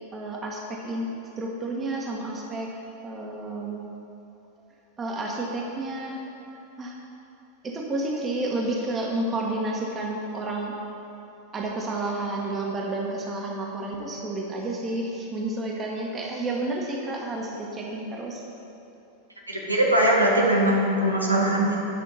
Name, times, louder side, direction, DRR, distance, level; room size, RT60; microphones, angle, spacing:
voice 1, 0.1-2.7 3.0-3.8 5.0-6.2 6.8-6.9 7.6-10.7 11.5-18.4, right 2 dB, 20° right, -1 dB, 1.5 m, -30 dB
voice 2, 19.5-21.9, right 1 dB, 85° right, -2 dB, 1.1 m, -21 dB
9.8 x 6.2 x 5.6 m, 2.8 s
figure-of-eight pair, 90°, 0 cm